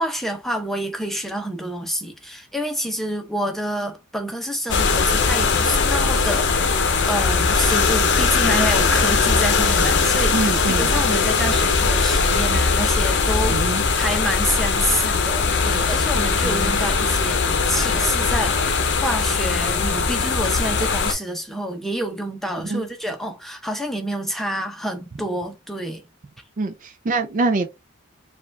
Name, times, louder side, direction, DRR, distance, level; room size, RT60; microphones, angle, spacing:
voice 1, 0.0-13.6 13.9-26.0, equal, ahead, 0.7 m, -28 dB
sound 1, 4.7-21.1, left 4 dB, 55° left, 0.7 m, -20 dB
voice 2, 10.3-10.9 13.5-13.8 16.4-16.8 22.6-22.8 26.6-27.7, right 3 dB, 35° right, 0.4 m, -24 dB
4.7 x 2.4 x 3.4 m
head